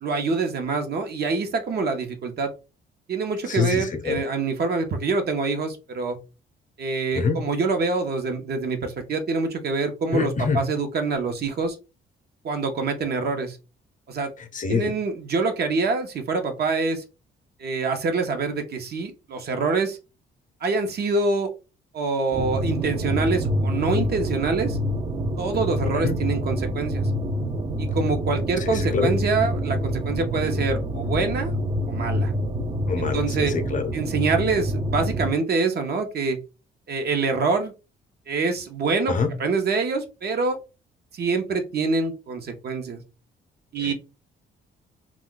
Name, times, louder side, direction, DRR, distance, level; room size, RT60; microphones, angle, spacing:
voice 1, 0.0-2.5 3.1-6.2 6.8-11.8 12.4-13.6 14.1-14.3 14.7-17.0 17.6-20.0 20.6-21.5 21.9-24.8 25.4-27.1 27.8-31.5 31.9-32.3 33.0-33.5 33.9-36.4 36.9-37.7 38.3-39.1 39.4-40.6 41.1-43.0 43.7-43.9, right 4 dB, 55° right, 0.8 m, -25 dB
voice 2, 3.5-4.2 7.1-7.5 10.1-10.7 14.4-14.9 25.9-26.2 28.6-29.1 32.9-33.9 39.1-39.3 43.8-43.9, left 5 dB, 40° left, 0.7 m, -26 dB
sound 1, 22.3-35.3, equal, 25° right, 0.5 m, -27 dB
2.3 x 2.2 x 3.7 m
cardioid pair, 90°, 20 cm